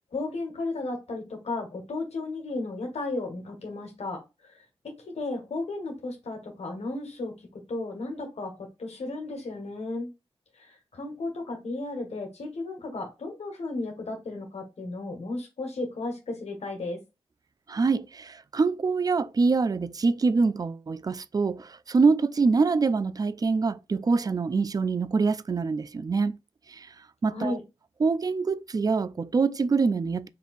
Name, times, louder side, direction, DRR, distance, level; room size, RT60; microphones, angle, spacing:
voice 1, 0.1-4.6 5.0-7.3 7.7-10.1 10.6-17.0 27.3-27.6, left 2 dB, 90° left, 1.3 m, -34 dB
voice 2, 17.7-26.4 26.7-26.9 27.2-27.6 28.0-30.3, right 4 dB, 35° right, 0.3 m, -25 dB
3.6 x 2.7 x 4.0 m
wide cardioid pair, 80°, 11 cm